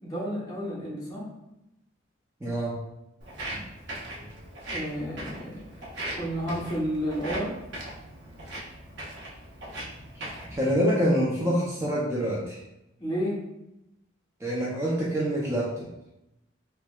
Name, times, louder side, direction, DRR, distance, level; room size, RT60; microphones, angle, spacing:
voice 1, 0.0-1.2 4.7-5.6 6.1-7.6 13.0-13.4, equal, 20° left, -6 dB, 0.8 m, -31 dB
voice 2, 2.4-2.7 10.5-12.6 14.4-15.9, equal, 15° right, -6 dB, 0.4 m, -26 dB
Walk footsteps, 3.2-10.6, right 1 dB, 60° right, 0.8 m, -39 dB
4.4 x 2.1 x 2.3 m, 0.89 s
head